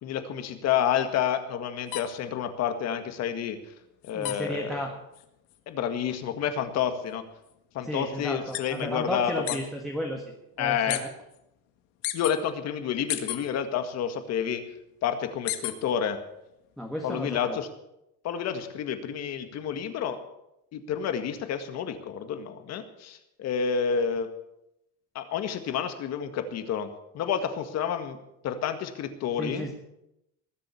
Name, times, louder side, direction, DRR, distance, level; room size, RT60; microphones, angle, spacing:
voice 1, 0.0-3.6 4.0-4.8 5.7-7.2 7.7-9.6 10.6-11.0 12.1-14.6 15.0-16.2 17.0-17.7 18.2-20.2 20.7-24.3 25.2-28.2 28.4-29.7, left 8 dB, 50° left, 8 dB, 1.9 m, -29 dB
sound 1, 1.9-9.7 10.0-11.0 11.3-12.4 12.8-14.0 14.3-16.0 16.4-17.6, left 14 dB, 80° left, 1.8 m, -36 dB
voice 2, 4.1-4.9 7.8-10.2 10.6-11.1 16.8-17.6 29.4-29.7, equal, ahead, 0 dB, 1.7 m, -33 dB
20.0 x 7.7 x 7.2 m, 0.85 s
cardioid pair, 150°, 34 cm